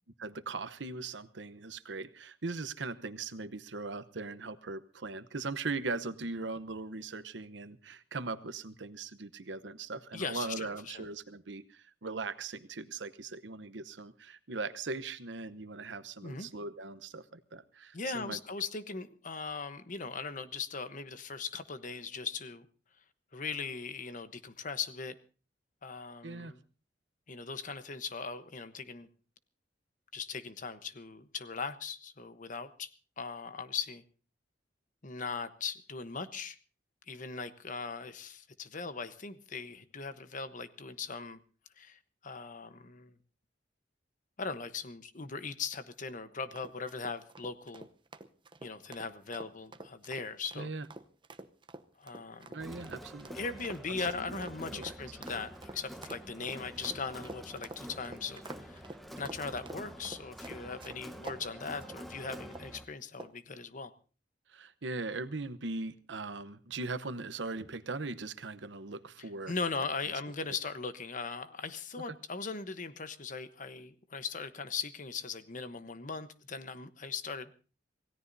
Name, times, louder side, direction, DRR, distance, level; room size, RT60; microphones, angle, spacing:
voice 1, 0.2-18.4 26.2-26.5 50.5-50.9 52.5-53.3 54.2-54.9 64.5-69.5, right 3 dB, 80° right, 13 dB, 0.9 m, -40 dB
voice 2, 10.1-11.0 16.2-16.5 17.9-22.7 23.3-25.1 25.8-26.6 27.3-29.1 30.1-32.9 33.2-34.0 35.0-36.6 37.1-41.4 41.8-43.2 44.4-47.9 48.6-50.7 52.0-52.6 53.3-58.8 59.2-63.9 69.5-77.5, left 4 dB, 45° left, 11 dB, 1.0 m, -39 dB
sound 1, 46.6-61.4 61.8-62.0 62.5-62.8 63.2-63.5, right 2 dB, 25° right, 0.8 m, -48 dB
Crowd, 52.6-62.8, equal, ahead, 1.1 m, -47 dB
27.0 x 17.0 x 2.7 m, 0.36 s
head